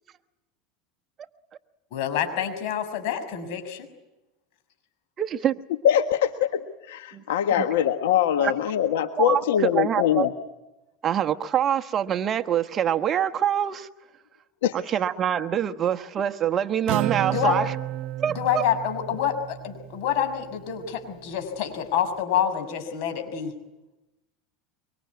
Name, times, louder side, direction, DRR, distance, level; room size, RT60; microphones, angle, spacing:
voice 1, 1.9-3.9 17.3-17.6 18.3-23.5, left 9 dB, 65° left, 8 dB, 6.5 m, -27 dB
voice 2, 5.2-5.6 7.1-7.2 7.6-7.7 8.4-8.5 9.2-10.3 11.0-13.9 14.7-17.7 18.2-18.6, right 9 dB, 35° right, 9 dB, 1.2 m, -25 dB
voice 3, 5.8-6.6 6.9-10.3 14.6-14.7, left 10 dB, 90° left, 8 dB, 1.5 m, -22 dB
Acoustic guitar, 16.9-20.5, right 13 dB, 65° right, 1.3 m, -32 dB
25.0 x 24.5 x 9.6 m, 0.99 s
supercardioid pair, 125°, 0 cm